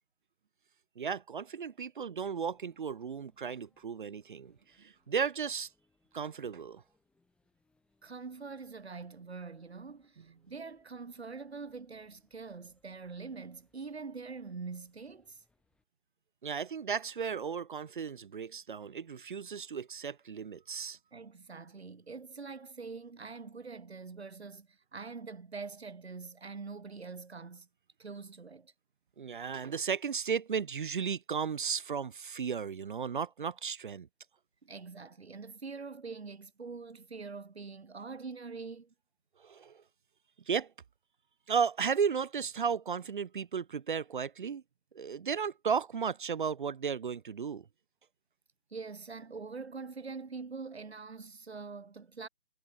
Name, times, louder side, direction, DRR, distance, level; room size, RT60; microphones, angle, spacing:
voice 1, 1.0-5.7 6.1-6.8 16.4-21.0 29.2-34.1 39.4-39.8 40.5-40.7 41.5-44.6 44.9-47.6, right 6 dB, 50° right, 1.0 m, -34 dB
sound 1, 2.2-15.8, left 3 dB, 5° left, 7.7 m, -77 dB
voice 2, 8.0-15.4 21.1-27.7 28.0-28.7 34.6-38.9 48.7-52.3, right 4 dB, 80° right, 2.4 m, -44 dB
figure-of-eight pair, 155°, 32 cm